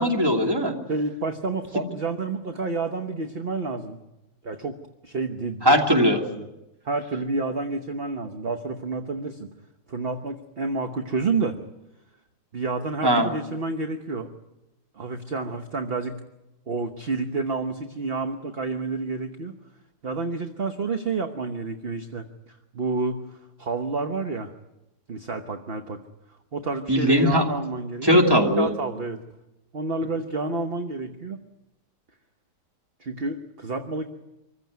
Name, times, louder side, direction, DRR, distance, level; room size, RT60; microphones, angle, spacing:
voice 1, 0.0-0.7 5.6-6.2 13.0-13.3 26.9-27.4 28.0-28.7, equal, 15° right, 2 dB, 2.7 m, -19 dB
voice 2, 0.9-4.0 4.4-4.8 5.0-6.5 6.8-9.5 9.9-11.6 12.5-14.3 15.0-16.2 16.7-19.5 20.0-24.5 25.1-26.0 26.5-28.3 28.6-29.2 29.7-31.4 33.0-34.1, right 3 dB, 40° right, 7 dB, 1.2 m, -29 dB
25.5 x 15.0 x 9.4 m, 0.95 s
omnidirectional pair, 1.8 m